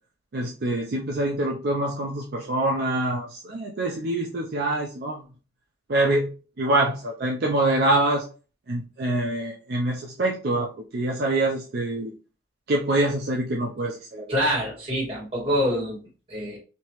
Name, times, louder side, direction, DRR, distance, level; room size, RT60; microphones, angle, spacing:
voice 1, 0.3-5.2 5.9-6.3 6.6-8.2 8.7-12.1 12.7-14.4, right 2 dB, 55° right, -1 dB, 0.5 m, -25 dB
voice 2, 14.3-16.0 16.3-16.6, equal, 30° right, -6 dB, 1.8 m, -25 dB
3.2 x 2.8 x 3.0 m, 0.36 s
head